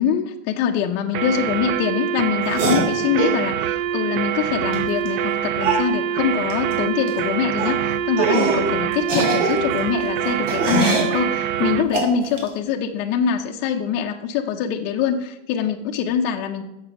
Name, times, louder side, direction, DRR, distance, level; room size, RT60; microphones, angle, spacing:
voice 1, 0.0-16.6, left 8 dB, 30° left, 1 dB, 0.6 m, -24 dB
sound 1, 1.1-11.9, right 10 dB, 45° right, 0.5 m, -24 dB
sound 2, 2.5-3.4 4.7-4.8 5.1-5.2 5.6-5.9 6.5-6.7 7.0-7.2 7.6-7.7 8.2-8.7 9.0-11.1 11.9-12.5, right 3 dB, 85° right, 2.9 m, -23 dB
7.3 x 7.0 x 5.8 m, 0.93 s
supercardioid pair, 155°, 36 cm